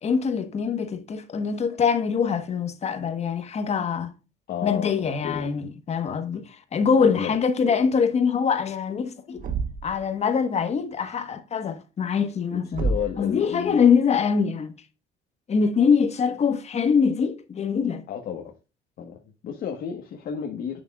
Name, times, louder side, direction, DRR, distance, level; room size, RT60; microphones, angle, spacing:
voice 1, 0.0-4.1 4.6-9.4 9.8-12.8 13.2-14.7 15.5-18.0, left 6 dB, 40° left, 1.3 m, -23 dB
voice 2, 4.5-5.5 7.0-7.9 12.8-13.8 18.1-18.5 19.0-20.8, left 8 dB, 60° left, 1.4 m, -32 dB
Thump thud, 9.4-10.0 12.7-13.3, right 3 dB, 55° right, 1.0 m, -28 dB
8.5 x 7.2 x 2.4 m
cardioid pair, 110°, 17 cm